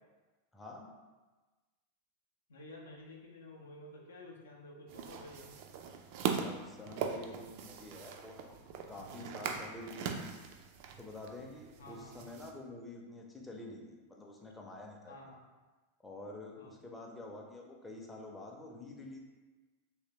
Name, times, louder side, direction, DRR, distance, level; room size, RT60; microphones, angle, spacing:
voice 1, 0.5-0.9 6.3-8.6 8.9-10.4 11.0-15.4 16.0-19.2, left 2 dB, 10° left, -1 dB, 0.5 m, -48 dB
voice 2, 2.5-5.6 11.8-12.3 15.1-15.4 16.6-16.7, left 1 dB, 70° left, 0 dB, 0.4 m, -51 dB
sound 1, 4.9-12.5, right 6 dB, 45° right, 0.3 m, -41 dB
3.2 x 3.0 x 2.9 m, 1.2 s
figure-of-eight pair, 90°, 0 cm